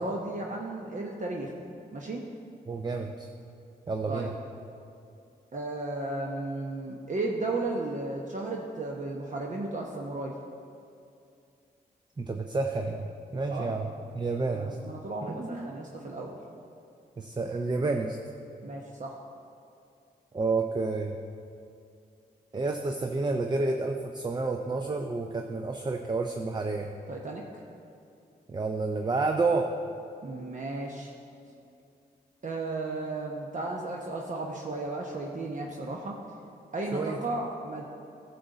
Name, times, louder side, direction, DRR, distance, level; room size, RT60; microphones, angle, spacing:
voice 1, 0.0-1.6 1.9-2.2 4.1-4.3 5.5-10.3 13.5-13.8 14.5-16.4 18.6-19.1 27.1-27.4 30.2-31.1 32.4-36.2 36.7-37.8, right 2 dB, 45° right, -1 dB, 1.0 m, -34 dB
voice 2, 2.7-3.3 3.9-4.3 12.2-13.9 14.1-14.8 15.4-15.7 17.2-18.2 20.3-21.2 22.5-26.9 28.5-29.7 36.9-37.4, right 3 dB, 25° right, 4 dB, 0.6 m, -30 dB
11.0 x 6.9 x 4.0 m, 2.5 s
supercardioid pair, 45°, 17 cm